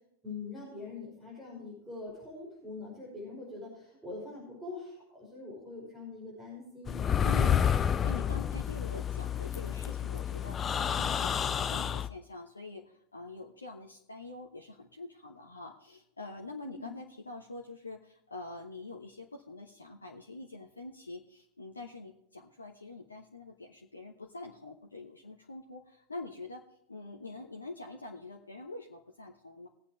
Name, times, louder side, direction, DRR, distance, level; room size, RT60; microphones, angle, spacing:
voice 1, 0.2-7.0 16.6-16.9, left 3 dB, 15° right, -6 dB, 5.8 m, -43 dB
sound 1, 6.9-12.1, left 8 dB, 20° left, 0.5 m, -29 dB
voice 2, 7.2-26.6 26.9-29.7, left 2 dB, 80° left, 1 dB, 1.1 m, -45 dB
21.0 x 8.4 x 3.2 m, 0.74 s
figure-of-eight pair, 90°, 0 cm